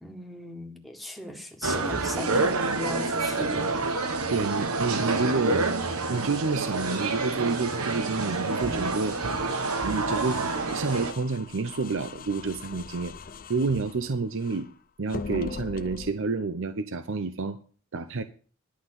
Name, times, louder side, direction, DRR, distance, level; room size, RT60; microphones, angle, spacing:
voice 1, 0.0-3.8, left 1 dB, ahead, 1.7 m, -37 dB
sound 1, 1.6-11.1, right 3 dB, 85° right, 1.4 m, -28 dB
voice 2, 4.3-5.7 6.1-9.2 9.8-10.4 10.7-13.1 13.5-14.7 15.0-17.6 17.9-18.2, right 4 dB, 60° right, 0.7 m, -29 dB
sound 2, 5.9-14.7 15.1-16.1, left 5 dB, 40° left, 0.6 m, -42 dB
11.5 x 5.8 x 8.0 m
head